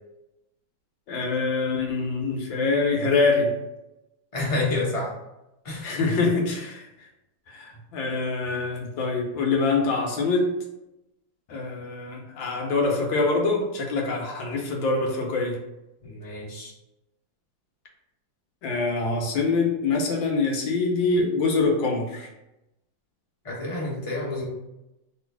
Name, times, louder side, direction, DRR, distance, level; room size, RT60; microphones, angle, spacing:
voice 1, 1.1-3.5 5.8-7.1 7.5-10.6 11.5-15.6 18.6-22.3, left 3 dB, 80° left, 1 dB, 1.6 m, -25 dB
voice 2, 4.3-5.1 5.6-5.9 16.0-16.7 23.4-24.4, left 2 dB, 25° left, -5 dB, 0.8 m, -29 dB
3.0 x 3.0 x 4.6 m, 0.94 s
omnidirectional pair, 2.1 m